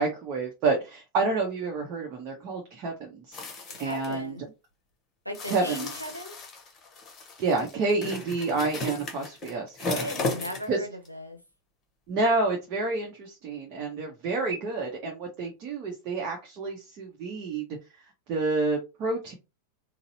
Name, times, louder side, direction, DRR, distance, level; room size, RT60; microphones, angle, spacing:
voice 1, 0.0-4.4 5.5-5.9 7.4-10.1 10.7-10.8 12.1-17.7 18.3-19.3, right 3 dB, 40° right, 0.8 m, -29 dB
sound 1, 3.3-4.1 5.3-10.8 11.1-11.2, left 3 dB, 30° left, 1.0 m, -35 dB
voice 2, 3.7-4.5 5.2-6.4 9.9-11.4, equal, 90° right, 0.9 m, -37 dB
3.9 x 2.1 x 2.7 m
figure-of-eight pair, 90°, 0 cm